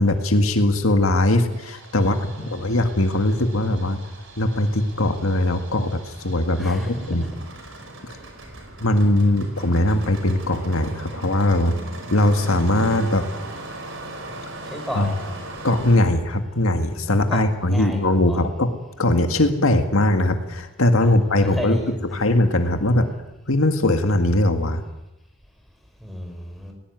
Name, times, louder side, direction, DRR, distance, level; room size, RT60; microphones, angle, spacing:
voice 1, 0.0-4.0 4.4-7.2 8.8-11.8 12.1-13.2 14.9-15.1 15.6-18.7 19.0-21.8 22.1-23.1 23.5-24.8, left 1 dB, 75° left, 6 dB, 1.9 m, -20 dB
Engine starting, 1.5-16.0, right 2 dB, 60° right, 5.1 m, -39 dB
voice 2, 2.0-2.6 6.6-7.3 14.6-15.3 17.3-18.4 21.0-22.2 26.0-26.7, equal, ahead, 2 dB, 4.9 m, -33 dB
19.0 x 19.0 x 9.5 m, 0.97 s
head